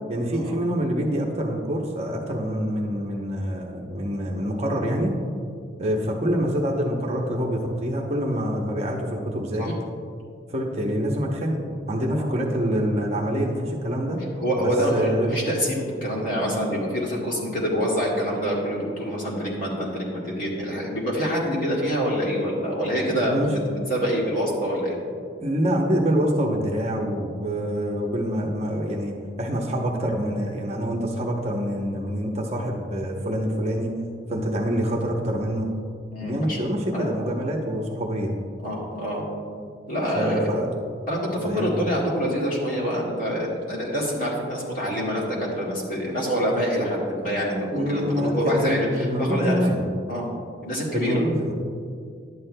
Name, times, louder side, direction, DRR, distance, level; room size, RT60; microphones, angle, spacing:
voice 1, 0.1-5.2 5.8-9.7 10.5-11.6 11.9-14.2 14.6-15.4 23.1-23.5 25.4-29.1 29.4-33.9 34.3-35.7 36.2-38.3 40.1-40.7 41.4-41.8 47.7-49.8 50.9-51.5, equal, 35° right, 0 dB, 0.7 m, -26 dB
voice 2, 14.4-25.0 36.1-37.3 38.6-39.2 39.9-40.5 41.1-49.6 50.1-50.3 50.6-51.2, equal, 45° left, -5 dB, 2.0 m, -26 dB
11.5 x 9.4 x 2.2 m, 2.2 s
head